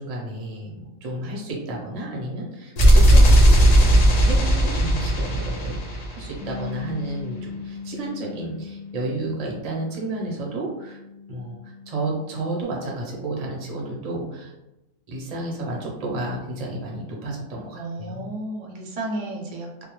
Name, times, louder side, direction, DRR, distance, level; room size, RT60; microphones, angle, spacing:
voice 1, 0.0-11.0 11.3-14.5 15.1-18.3, right 2 dB, 40° right, -3 dB, 0.5 m, -32 dB
sound 1, 2.8-6.6, right 1 dB, 80° left, 0.3 m, -16 dB
Bass guitar, 6.4-12.7, left 5 dB, 65° left, 0.7 m, -39 dB
voice 2, 17.7-19.8, right 1 dB, 75° right, 0 dB, 0.9 m, -33 dB
2.2 x 2.1 x 2.9 m, 0.95 s
omnidirectional pair, 1.3 m